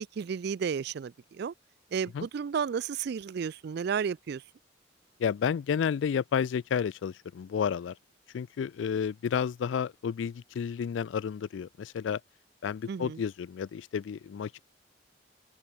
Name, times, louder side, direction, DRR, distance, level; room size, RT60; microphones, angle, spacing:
voice 1, 0.0-1.5 1.9-4.4 12.9-13.2, right 6 dB, 60° right, 0.4 m, -32 dB
voice 2, 5.2-8.0 8.3-12.2 12.6-14.6, left 7 dB, 75° left, 0.3 m, -31 dB
open air
head